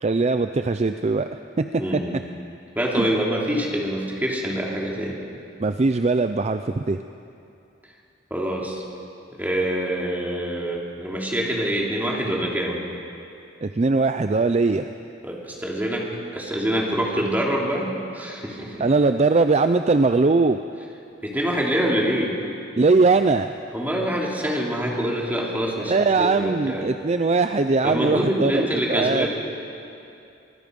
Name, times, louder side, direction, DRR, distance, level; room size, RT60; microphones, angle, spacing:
voice 1, 0.0-1.7 1.9-2.0 2.9-3.1 5.6-7.0 13.6-14.9 18.8-20.6 22.8-23.5 25.9-29.3, right 3 dB, 35° right, 9 dB, 0.5 m, -20 dB
voice 2, 1.8-2.1 2.7-5.2 8.3-8.8 9.4-12.8 15.2-16.0 16.3-18.8 21.2-22.3 23.7-26.8 27.8-29.3, equal, 10° right, -3 dB, 3.2 m, -25 dB
25.0 x 20.0 x 5.4 m, 2.6 s
head